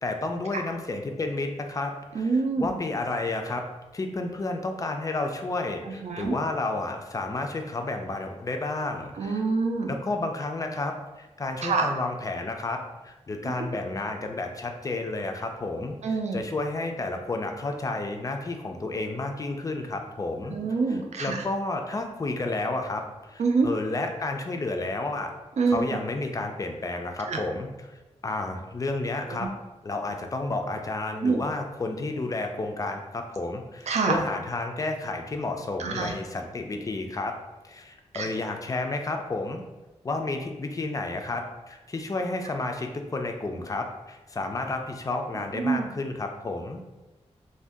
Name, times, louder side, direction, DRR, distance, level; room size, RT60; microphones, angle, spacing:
voice 1, 0.0-3.6 3.9-9.4 9.9-20.6 20.9-25.3 25.7-27.9 28.2-29.5 29.8-37.3 37.6-39.6 40.0-46.8, left 2 dB, 30° left, 4 dB, 0.3 m, -31 dB
voice 2, 2.1-2.7 6.0-6.3 9.2-9.9 11.6-11.9 16.0-16.4 20.5-21.4 23.4-23.7 25.6-25.8 27.3-27.4 31.2-31.4 33.9-34.2 35.8-36.1 38.1-38.3 45.6-45.9, right 4 dB, 70° right, 2 dB, 0.4 m, -25 dB
2.6 x 2.2 x 3.4 m, 1.1 s
wide cardioid pair, 110°, 12 cm